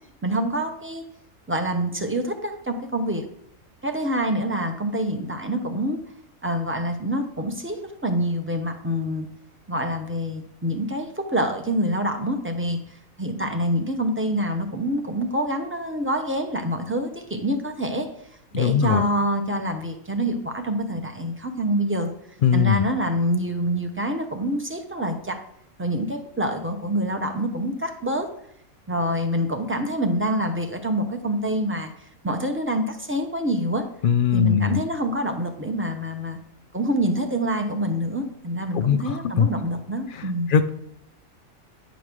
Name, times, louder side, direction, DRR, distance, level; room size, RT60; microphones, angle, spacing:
voice 1, 0.2-1.0 1.5-3.3 3.8-6.0 6.4-9.3 9.7-12.8 13.2-18.1 18.5-22.1 22.5-25.4 25.8-28.3 28.9-31.9 32.2-33.8 34.3-36.4 36.7-40.5, right 1 dB, 10° right, 5 dB, 0.8 m, -26 dB
voice 2, 18.5-19.0 22.4-22.8 34.0-34.8 38.7-39.5 40.1-40.7, left 7 dB, 85° left, 10 dB, 0.4 m, -20 dB
9.8 x 5.2 x 6.2 m, 0.72 s
omnidirectional pair, 1.5 m